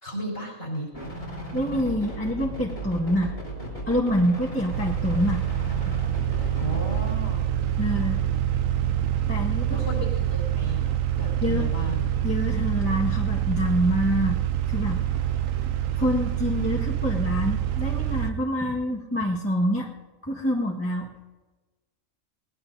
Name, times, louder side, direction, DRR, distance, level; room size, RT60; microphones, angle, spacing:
voice 1, 0.0-0.9 6.6-8.3 9.7-10.9 11.2-12.1, equal, 55° left, -2 dB, 4.7 m, -34 dB
sound 1, 0.9-7.1, right 1 dB, 80° left, 5.9 m, -36 dB
voice 2, 1.5-3.3 3.9-5.4 5.9-6.0 7.8-8.2 9.3-9.8 11.4-11.7 12.2-14.4 14.7-15.1 16.0-19.9 20.2-21.1, equal, 10° left, -3 dB, 1.5 m, -26 dB
sound 2, 4.7-18.3, right 11 dB, 75° right, 1.1 m, -26 dB
21.5 x 19.0 x 2.8 m, 1.2 s
omnidirectional pair, 1.4 m